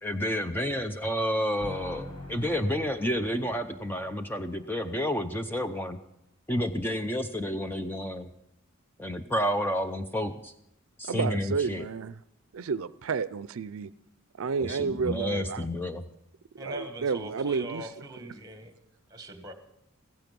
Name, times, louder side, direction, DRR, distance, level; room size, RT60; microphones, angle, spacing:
voice 1, 0.0-6.0 6.5-8.3 9.0-10.5 11.0-11.9 14.6-16.0, equal, 10° left, 0.6 m, -30 dB
sound 1, 1.6-5.7, left 2 dB, 85° left, 5.6 m, -46 dB
voice 2, 11.1-12.1 12.5-13.9 14.4-15.7 16.5-18.0, right 5 dB, 75° right, 0.5 m, -31 dB
voice 3, 16.6-18.7 19.1-19.5, right 1 dB, 15° right, 1.8 m, -41 dB
15.5 x 15.5 x 5.3 m
head